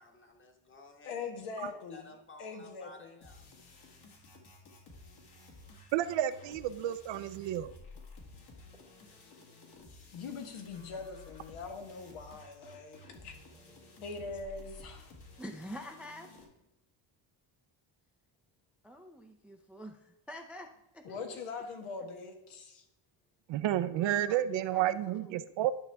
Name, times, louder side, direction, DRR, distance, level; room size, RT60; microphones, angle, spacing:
voice 1, 0.0-1.3 1.6-3.4, left 3 dB, 25° left, 4 dB, 1.3 m, -55 dB
voice 2, 1.0-2.1 2.4-3.2 10.1-13.4 14.0-15.1 21.0-22.8, left 4 dB, 80° left, 4 dB, 1.6 m, -42 dB
sound 1, 3.2-16.4, left 2 dB, 50° left, 1.9 m, -54 dB
voice 3, 5.9-7.7 23.5-25.7, right 12 dB, 60° right, 11 dB, 0.6 m, -31 dB
voice 4, 8.7-9.4 13.5-14.0 15.4-16.3 18.8-21.4 22.0-22.1 23.9-25.5, equal, 5° right, 6 dB, 0.4 m, -48 dB
11.0 x 5.6 x 3.4 m, 0.91 s
cardioid pair, 125°, 50 cm